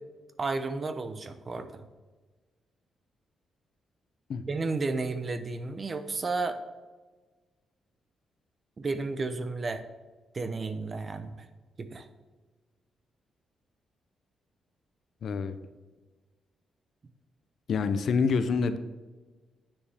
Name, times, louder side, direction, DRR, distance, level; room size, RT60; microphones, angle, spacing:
voice 1, 0.4-1.8 4.5-6.6 8.8-9.9 10.3-11.5 11.8-12.1, right 3 dB, 35° right, 10 dB, 0.8 m, -32 dB
voice 2, 15.2-15.6 17.7-18.8, left 5 dB, 60° left, 11 dB, 0.6 m, -26 dB
9.8 x 7.0 x 3.5 m, 1.3 s
cardioid pair, 105°, 0 cm